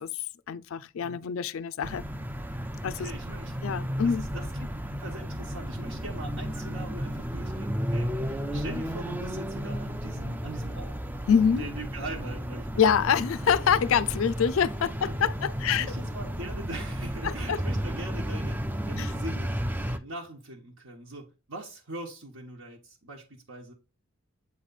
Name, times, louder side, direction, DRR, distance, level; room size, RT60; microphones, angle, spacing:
voice 1, 0.0-2.0 2.8-3.1 3.6-4.3 11.3-11.6 12.8-15.9 17.2-17.6 19.0-19.1, left 7 dB, 65° left, 0.4 m, -25 dB
sound 1, 1.8-20.0, equal, 10° right, 0.3 m, -33 dB
voice 2, 2.8-3.7 4.0-4.7 5.0-11.0 11.6-12.8 13.4-13.5 14.6-14.7 15.0-15.3 15.6-18.6 18.9-19.5 19.9-23.7, right 2 dB, 70° right, 1.2 m, -41 dB
8.1 x 3.2 x 4.0 m
head